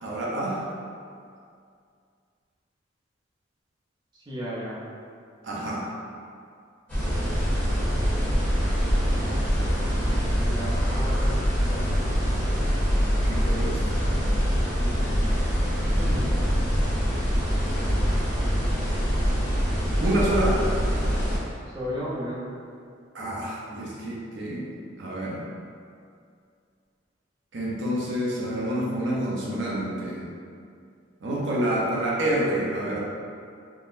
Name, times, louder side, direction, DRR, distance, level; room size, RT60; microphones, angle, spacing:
voice 1, 0.0-0.7 5.4-5.9 13.2-14.0 20.0-20.6 23.1-24.7 25.0-25.4 27.5-30.2 31.2-33.0, right 1 dB, 70° right, -5 dB, 0.6 m, -28 dB
voice 2, 4.1-4.8 10.4-12.2 14.6-14.9 16.0-16.3 21.7-22.4, equal, 25° right, -9 dB, 0.6 m, -34 dB
sound 1, 6.9-21.4, equal, 10° left, 1.1 m, -24 dB
3.6 x 2.0 x 2.5 m, 2.3 s
head